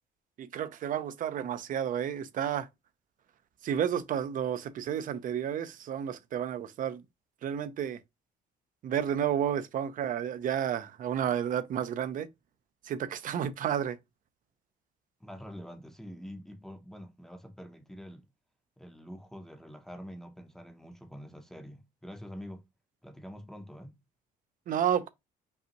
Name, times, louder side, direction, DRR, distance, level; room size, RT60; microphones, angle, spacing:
voice 1, 0.4-2.7 3.6-7.0 7.4-8.0 8.8-12.3 12.8-14.0 24.7-25.1, right 9 dB, 55° right, 0.6 m, -31 dB
voice 2, 15.2-18.3 18.8-22.7 23.0-24.0, equal, 5° left, 0.7 m, -46 dB
5.4 x 2.4 x 2.9 m
cardioid pair, 110°, 17 cm